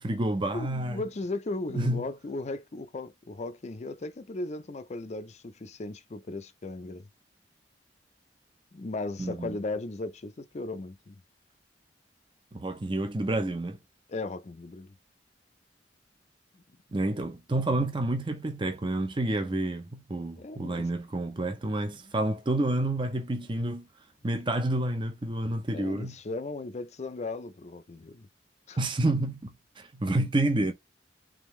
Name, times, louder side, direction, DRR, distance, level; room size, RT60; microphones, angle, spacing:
voice 1, 0.0-1.0 1.7-2.1 9.2-9.6 12.5-13.8 16.9-23.8 24.2-26.1 28.8-30.7, right 1 dB, 25° right, 0.6 m, -29 dB
voice 2, 0.5-7.1 8.7-11.2 14.1-14.9 16.5-16.6 20.4-20.9 25.7-28.3 28.7-28.8, left 2 dB, 40° left, 0.5 m, -37 dB
3.6 x 3.4 x 3.1 m
head